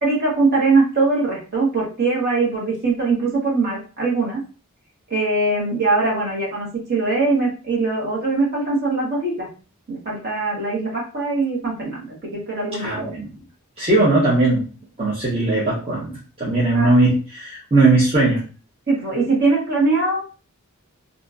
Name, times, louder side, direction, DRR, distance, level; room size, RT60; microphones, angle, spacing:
voice 1, 0.0-4.4 5.1-9.5 9.9-13.1 16.7-16.9 18.9-20.2, right 3 dB, 45° right, -4 dB, 1.2 m, -21 dB
voice 2, 12.8-13.3 13.8-14.6 15.0-18.4, right 2 dB, 25° right, -8 dB, 0.8 m, -18 dB
2.8 x 2.6 x 2.4 m, 0.35 s
head